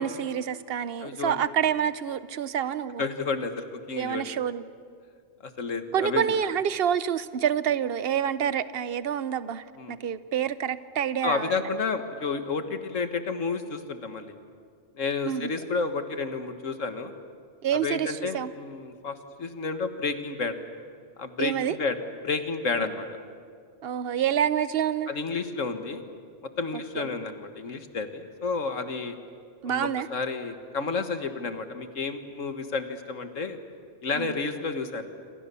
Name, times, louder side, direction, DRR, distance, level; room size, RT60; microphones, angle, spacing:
voice 1, 0.0-3.0 4.0-4.6 5.9-11.7 15.3-15.5 17.6-18.5 21.4-21.8 22.8-22.9 23.8-25.1 27.0-27.1 29.6-30.1 34.1-34.3, right 9 dB, 55° right, 14 dB, 0.9 m, -27 dB
voice 2, 1.0-1.4 3.0-4.3 5.4-6.4 9.8-10.0 11.2-14.4 15.0-17.1 17.7-20.5 21.2-22.0 22.2-23.1 25.1-26.0 26.4-29.2 29.6-33.6 34.0-35.1, left 4 dB, 75° left, 8 dB, 1.9 m, -31 dB
27.0 x 27.0 x 7.0 m, 2.2 s
omnidirectional pair, 1.3 m